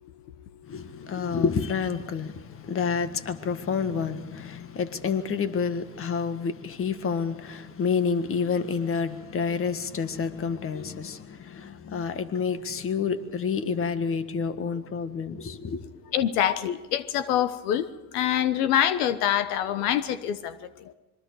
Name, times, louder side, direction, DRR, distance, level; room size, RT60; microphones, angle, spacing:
voice 1, 0.6-15.8, left 6 dB, 30° left, 1.6 m, -29 dB
voice 2, 16.1-17.8 18.1-20.5, left 10 dB, 80° left, 1.3 m, -25 dB
26.0 x 22.5 x 4.9 m
supercardioid pair, 105°, 45 cm